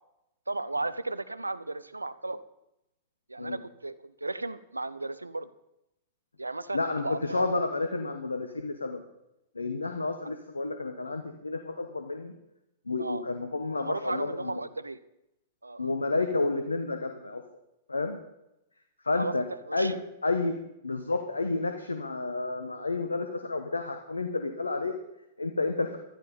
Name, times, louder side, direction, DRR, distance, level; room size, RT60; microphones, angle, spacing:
voice 1, 0.5-2.4 3.3-5.5 6.4-7.5 13.0-13.2 13.8-15.0 15.6-15.9 19.1-19.3 19.7-19.9, right 2 dB, 90° right, 15 dB, 0.7 m, -35 dB
voice 2, 6.7-9.0 9.5-12.3 12.9-14.6 15.8-17.4 17.9-18.2 19.0-19.4 19.7-20.6 20.8-25.0 25.4-26.0, left 3 dB, 85° left, 7 dB, 1.2 m, -30 dB
14.5 x 12.5 x 5.5 m, 0.87 s
figure-of-eight pair, 105°, 0 cm